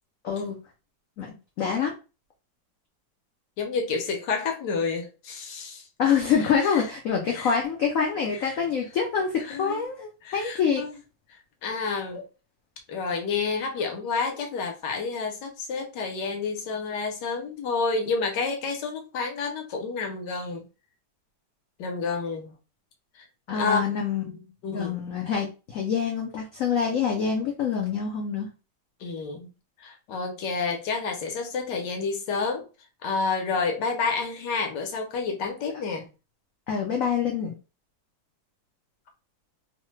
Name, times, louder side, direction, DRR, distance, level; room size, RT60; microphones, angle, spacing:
voice 1, 0.2-0.6 1.2-1.3 1.6-1.9 6.0-10.8 23.5-28.5 36.7-37.5, left 6 dB, 85° left, 0.7 m, -26 dB
voice 2, 3.6-5.8 6.4-6.8 7.3-7.6 8.4-8.6 9.5-9.8 10.2-10.9 11.3-12.3 12.9-20.7 21.8-22.6 23.1-23.3 23.5-23.8 24.6-25.0 29.0-29.5 29.8-32.7 33.0-36.1, left 4 dB, 70° left, 1.2 m, -29 dB
3.1 x 2.1 x 3.1 m
omnidirectional pair, 2.1 m